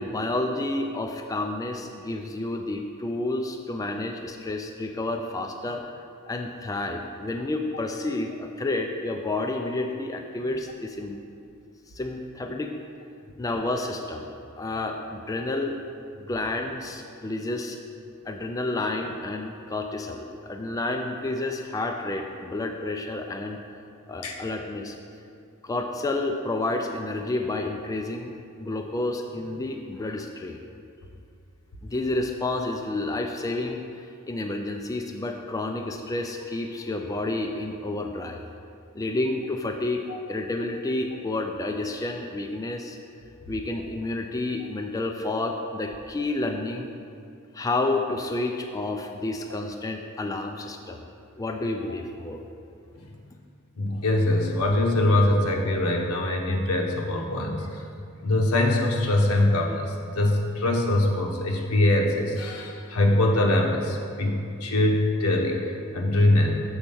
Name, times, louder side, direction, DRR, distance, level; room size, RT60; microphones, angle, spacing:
voice 1, 0.0-5.8 6.3-11.2 11.9-12.7 13.4-15.8 16.3-17.8 18.3-23.6 24.1-25.0 25.6-28.3 28.6-30.6 31.8-38.4 38.9-40.0 40.3-43.0 43.5-46.9 47.5-51.0 51.4-52.4, left 2 dB, 15° left, 3 dB, 0.3 m, -30 dB
voice 2, 53.8-57.8 58.2-66.6, left 1 dB, 80° left, 1 dB, 0.9 m, -23 dB
7.1 x 4.4 x 5.4 m, 2.4 s
head